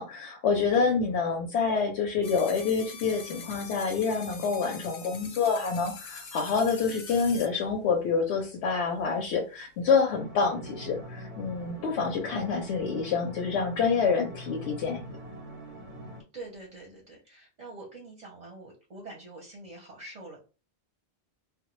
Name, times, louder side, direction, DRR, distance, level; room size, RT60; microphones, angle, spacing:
voice 1, 0.0-15.0, left 5 dB, 90° left, 1 dB, 0.9 m, -27 dB
sound 1, 2.2-7.5, left 5 dB, 55° left, 0.5 m, -44 dB
sound 2, 10.1-16.2, equal, 85° right, 0.9 m, -43 dB
voice 2, 16.3-20.4, right 2 dB, 45° right, -1 dB, 0.6 m, -45 dB
2.1 x 2.1 x 3.0 m, 0.33 s
omnidirectional pair, 1.1 m